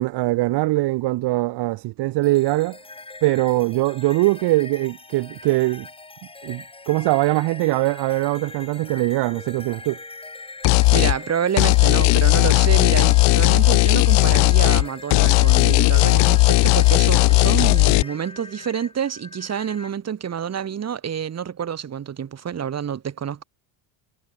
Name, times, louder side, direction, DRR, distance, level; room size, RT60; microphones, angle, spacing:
voice 1, 0.0-2.8 3.2-5.9 6.4-10.0, right 19 dB, 60° right, 1.8 m, -22 dB
sound 1, 2.2-19.9, left 3 dB, 10° left, 5.5 m, -41 dB
sound 2, 10.6-11.2 11.6-14.9 15.1-18.0, left 26 dB, 65° left, 0.7 m, -16 dB
voice 2, 10.9-23.4, right 8 dB, 35° right, 7.5 m, -28 dB
cardioid pair, 135°, 46 cm